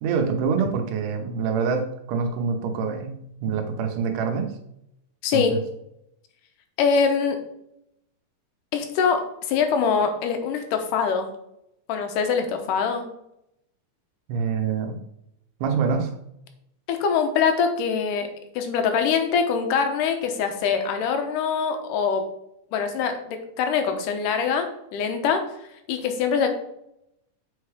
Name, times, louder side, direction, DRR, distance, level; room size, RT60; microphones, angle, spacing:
voice 1, 0.0-4.5 5.3-5.6 14.3-15.0 15.6-16.2, right 5 dB, 80° right, 5 dB, 2.4 m, -26 dB
voice 2, 5.2-5.6 6.8-7.4 8.7-9.2 9.5-11.3 11.9-13.1 16.9-18.3 18.6-22.2 22.7-25.4 25.9-26.5, left 6 dB, 85° left, 6 dB, 2.5 m, -23 dB
7.7 x 4.7 x 4.8 m, 0.79 s
omnidirectional pair, 3.7 m